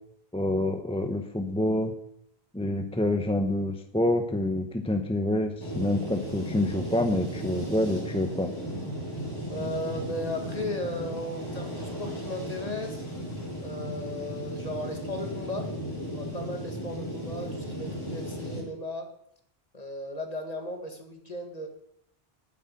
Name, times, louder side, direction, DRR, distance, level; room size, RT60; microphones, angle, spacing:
voice 1, 0.3-1.9 2.5-8.5, left 1 dB, 5° left, 6 dB, 0.8 m, -27 dB
sound 1, 5.6-18.6, equal, 20° left, 4.6 m, -35 dB
voice 2, 9.5-13.0 13.6-15.7 16.0-19.1 19.7-21.7, left 1 dB, 40° left, 4 dB, 2.0 m, -36 dB
9.7 x 8.1 x 8.8 m, 0.73 s
omnidirectional pair, 1.0 m